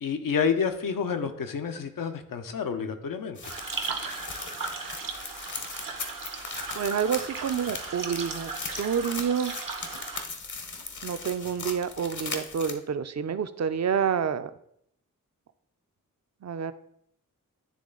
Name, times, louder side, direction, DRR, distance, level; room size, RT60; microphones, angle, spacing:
voice 1, 0.0-3.4, left 6 dB, 80° left, 7 dB, 0.7 m, -29 dB
sound 1, 3.4-12.7, left 4 dB, 60° left, 1.0 m, -39 dB
sound 2, 3.4-10.2, right 4 dB, 75° right, 0.9 m, -37 dB
voice 2, 6.7-8.5 8.8-9.5 11.0-14.5 16.4-16.7, right 7 dB, 55° right, 12 dB, 0.5 m, -28 dB
10.0 x 3.3 x 3.8 m, 0.72 s
cardioid pair, 50°, 33 cm